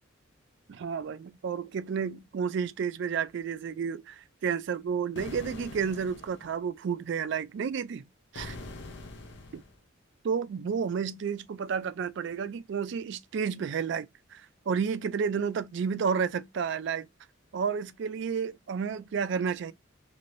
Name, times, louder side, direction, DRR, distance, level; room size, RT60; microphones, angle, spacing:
voice 1, 0.7-8.0 8.3-8.6 9.5-9.6 10.2-17.1 17.5-19.7, right 6 dB, 60° right, 0.3 m, -31 dB
sound 1, 5.2-6.6 8.3-9.8, left 3 dB, 55° left, 0.5 m, -43 dB
3.2 x 2.5 x 2.5 m
head